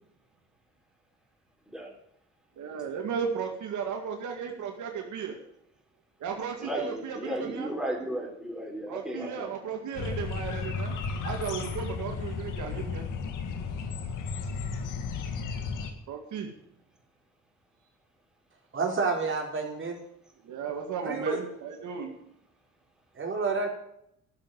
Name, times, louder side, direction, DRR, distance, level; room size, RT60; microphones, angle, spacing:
voice 1, 2.6-5.4 6.2-7.7 8.9-11.0 11.2-13.1 16.1-16.5 20.4-22.1, right 6 dB, 75° right, 3 dB, 2.1 m, -35 dB
voice 2, 6.6-9.4, right 1 dB, ahead, -1 dB, 4.5 m, -34 dB
sound 1, 9.9-15.9, left 5 dB, 85° left, 2.0 m, -34 dB
voice 3, 18.7-20.0 21.0-21.4 23.1-23.7, right 4 dB, 40° right, 1 dB, 4.2 m, -29 dB
12.0 x 7.3 x 9.8 m, 0.75 s
cardioid pair, 90°, 30 cm